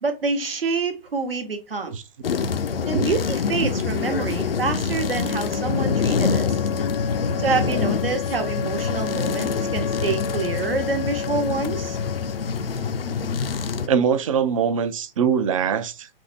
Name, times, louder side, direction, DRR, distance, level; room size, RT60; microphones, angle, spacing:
voice 1, 0.0-1.9 2.9-6.6 7.4-12.0, right 4 dB, 70° right, 1.0 m, -27 dB
sound 1, 2.2-13.9, left 5 dB, 75° left, 0.5 m, -25 dB
Wind instrument woodwind instrument, 4.9-12.6, left 6 dB, 30° left, 0.6 m, -33 dB
voice 2, 13.9-16.1, right 7 dB, 35° right, 0.4 m, -22 dB
4.2 x 2.0 x 3.3 m
figure-of-eight pair, 125°, 30 cm